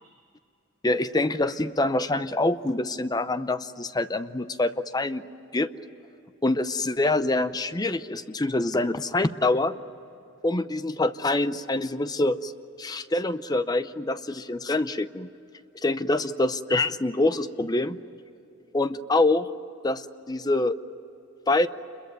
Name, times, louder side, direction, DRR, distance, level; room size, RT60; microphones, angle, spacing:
voice 1, 0.8-5.2 5.5-5.7 6.4-9.8 10.4-12.5 12.8-15.3 15.8-18.0 18.7-19.5 19.8-20.8 21.5-21.7, left 2 dB, 20° left, 12 dB, 0.6 m, -25 dB
28.0 x 22.5 x 9.3 m, 2.9 s
head